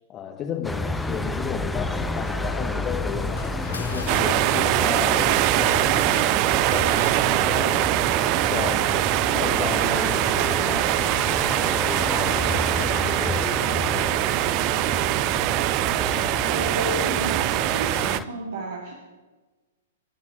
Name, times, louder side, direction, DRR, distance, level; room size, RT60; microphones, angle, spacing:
voice 1, 0.1-8.0 8.5-14.2, left 8 dB, 25° left, 4 dB, 1.0 m, -35 dB
sound 1, 0.6-18.3, left 2 dB, 5° left, 0.7 m, -31 dB
sound 2, 1.8-8.1, left 2 dB, 80° left, 1.4 m, -38 dB
sound 3, 4.1-18.2, right 18 dB, 35° right, 0.4 m, -23 dB
voice 2, 16.3-18.9, right 2 dB, 65° right, -2 dB, 2.6 m, -32 dB
17.0 x 10.0 x 6.3 m, 1.3 s
figure-of-eight pair, 105°, 0 cm